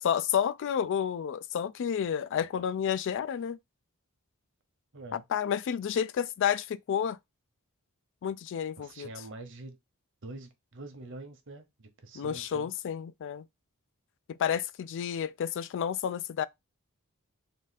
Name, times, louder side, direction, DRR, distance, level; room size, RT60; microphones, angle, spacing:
voice 1, 0.0-3.6 5.1-7.2 8.2-9.1 12.1-13.4 14.3-16.5, left 8 dB, 60° left, 0.3 m, -30 dB
voice 2, 4.9-5.2 8.8-9.8 10.2-12.7, right 2 dB, 60° right, 0.9 m, -45 dB
3.8 x 2.5 x 4.0 m
head